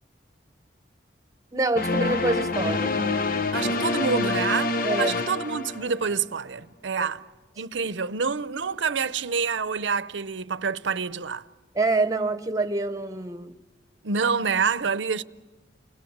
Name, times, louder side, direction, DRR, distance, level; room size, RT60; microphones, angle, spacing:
voice 1, 1.5-3.8 4.8-5.2 11.7-13.5, right 2 dB, 20° right, 1.0 m, -27 dB
sound 1, 1.8-6.2, left 3 dB, 50° left, 0.9 m, -26 dB
voice 2, 3.5-7.2 7.6-11.4 14.0-15.2, right 5 dB, 80° right, 0.7 m, -27 dB
29.5 x 21.0 x 7.3 m
head